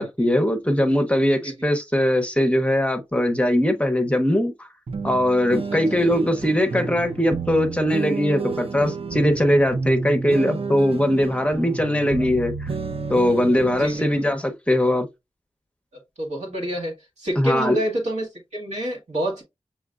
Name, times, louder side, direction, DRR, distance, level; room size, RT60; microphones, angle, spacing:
voice 1, 0.0-4.5 5.0-12.7 13.1-15.1 17.4-17.8, left 1 dB, 10° left, 0.8 m, -21 dB
sound 1, 4.9-14.3, right 5 dB, 55° right, 0.6 m, -31 dB
voice 2, 5.7-6.1 12.2-12.3 13.8-14.1 16.2-19.4, right 1 dB, 80° right, 1.6 m, -28 dB
6.4 x 3.0 x 2.4 m
wide cardioid pair, 90°, 12 cm